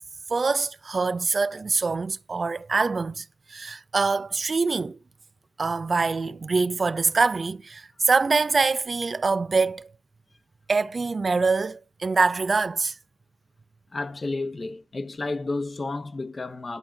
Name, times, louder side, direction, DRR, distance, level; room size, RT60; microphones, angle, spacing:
voice 1, 0.3-5.0 5.6-9.9 10.7-13.0, right 4 dB, 55° right, 0.4 m, -24 dB
voice 2, 13.9-16.8, left 3 dB, 45° left, 1.0 m, -31 dB
10.5 x 3.7 x 5.8 m
cardioid pair, 65°, 0 cm